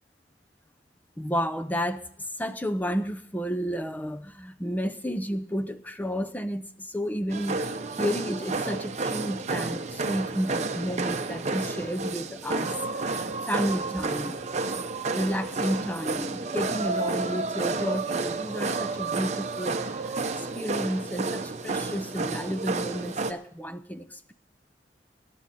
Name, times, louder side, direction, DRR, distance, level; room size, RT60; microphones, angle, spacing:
voice 1, 1.2-2.0 2.4-12.8 13.0-14.4 15.1-24.3, equal, 10° left, 9 dB, 0.7 m, -31 dB
sound 1, 7.3-23.3, right 3 dB, 40° right, 0.8 m, -31 dB
20.5 x 10.5 x 4.2 m, 0.71 s
head